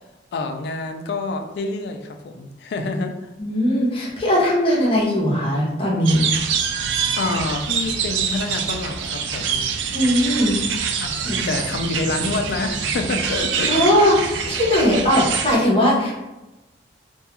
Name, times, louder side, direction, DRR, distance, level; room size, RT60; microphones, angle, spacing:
voice 1, 0.3-3.3 7.2-9.7 11.0-13.9 15.2-15.3, left 3 dB, 65° left, 6 dB, 0.3 m, -27 dB
voice 2, 3.4-6.3 9.9-10.6 11.2-11.5 13.7-16.2, equal, 30° left, -5 dB, 0.8 m, -19 dB
sound 1, 6.1-15.6, right 6 dB, 90° right, 0.3 m, -25 dB
2.3 x 2.2 x 2.8 m, 1.0 s
head